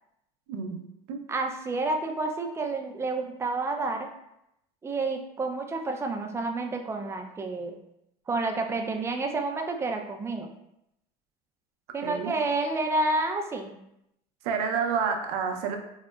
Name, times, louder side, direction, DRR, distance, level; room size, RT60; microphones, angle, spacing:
voice 1, 0.5-0.8 1.1-1.3 12.0-12.3 14.4-15.8, right 6 dB, 75° right, 4 dB, 0.5 m, -29 dB
voice 2, 1.3-4.1 4.8-7.8 8.3-10.5 11.9-13.7, right 2 dB, 15° right, 3 dB, 0.3 m, -29 dB
3.7 x 2.0 x 2.2 m, 0.81 s
supercardioid pair, 110°, 20 cm